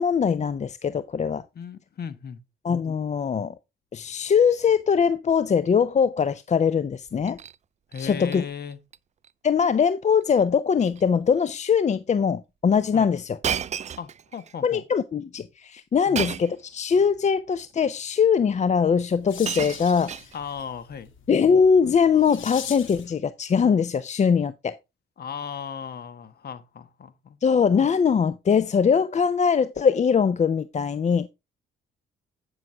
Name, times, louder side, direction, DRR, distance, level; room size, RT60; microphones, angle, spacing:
voice 1, 0.0-1.4 2.6-3.5 3.9-7.4 8.0-8.4 9.4-13.4 14.6-20.2 21.3-24.8 27.4-31.3, left 6 dB, 35° left, 0.6 m, -22 dB
voice 2, 1.5-2.4 7.9-8.8 12.9-13.1 14.0-14.8 16.1-16.4 20.3-21.1 25.2-27.4, left 7 dB, 50° left, 1.4 m, -36 dB
Shatter, 7.1-7.6 7.9-8.4 8.7-9.0 9.2-9.3 10.2-10.4 10.8-11.0 11.8-11.9 13.4-14.5 16.1-16.6 17.6-17.7 18.8-18.9 19.1-20.7 21.6-21.9, right 8 dB, 35° right, 0.4 m, -33 dB
sound 1, 18.7-23.2, left 8 dB, 75° left, 2.3 m, -42 dB
10.5 x 6.3 x 3.4 m
cardioid pair, 90°, 20 cm